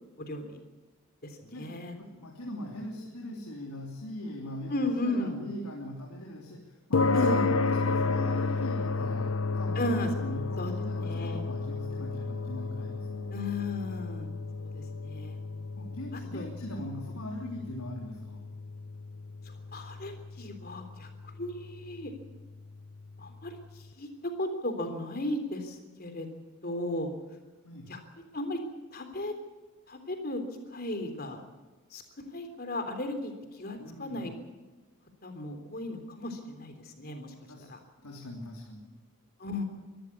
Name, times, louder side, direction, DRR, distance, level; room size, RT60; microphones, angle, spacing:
voice 1, 0.2-0.6 1.2-2.0 4.7-5.3 7.1-7.5 9.8-10.1 10.6-10.7 11.0-11.4 13.3-14.3 14.6-15.4 16.1-16.5 19.5-21.1 21.4-22.1 23.2-23.6 24.0-26.3 26.6-27.1 27.9-28.0 28.3-28.6 28.9-29.3 29.9-30.4 30.7-31.4 31.9-34.3 35.2-37.3 37.7-37.8 39.4-39.6, left 1 dB, 45° left, 6 dB, 3.5 m, -35 dB
voice 2, 1.5-13.3 15.7-18.5 27.6-27.9 33.8-34.2 37.5-37.7 38.0-39.0, left 1 dB, 85° left, -1 dB, 3.3 m, -41 dB
sound 1, 6.9-23.4, left 3 dB, 70° left, 0.9 m, -32 dB
24.0 x 14.0 x 8.5 m, 1.2 s
head